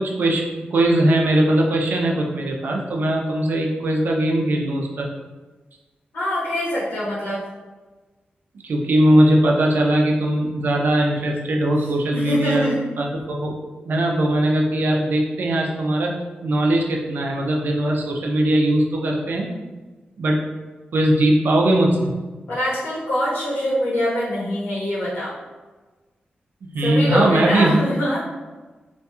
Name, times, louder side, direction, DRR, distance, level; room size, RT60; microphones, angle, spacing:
voice 1, 0.0-5.1 8.6-12.7 13.0-13.5 13.9-16.1 16.4-19.5 20.2-20.4 20.9-22.1 26.6-27.8, right 1 dB, 65° right, 0 dB, 0.4 m, -20 dB
voice 2, 6.1-7.4 12.1-12.8 22.5-25.3 26.8-28.2, equal, 90° left, -8 dB, 1.1 m, -23 dB
2.8 x 2.5 x 2.3 m, 1.2 s
wide cardioid pair, 145°, 3 cm